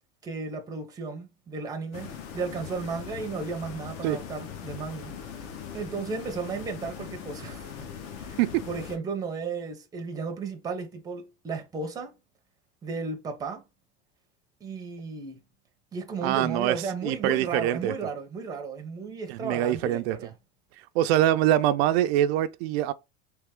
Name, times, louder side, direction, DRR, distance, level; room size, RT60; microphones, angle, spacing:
voice 1, 0.2-5.2 5.7-7.9 8.2-8.4 8.7-12.1 12.8-13.6 14.6-15.4 15.9-20.4, right 4 dB, 10° right, 0.6 m, -34 dB
sound 1, 1.9-9.0, left 7 dB, 45° left, 0.8 m, -40 dB
voice 2, 16.2-16.8 17.0-17.9 19.3-20.2 20.9-22.9, right 12 dB, 70° right, 0.5 m, -24 dB
3.4 x 3.0 x 3.5 m
cardioid pair, 160°, 32 cm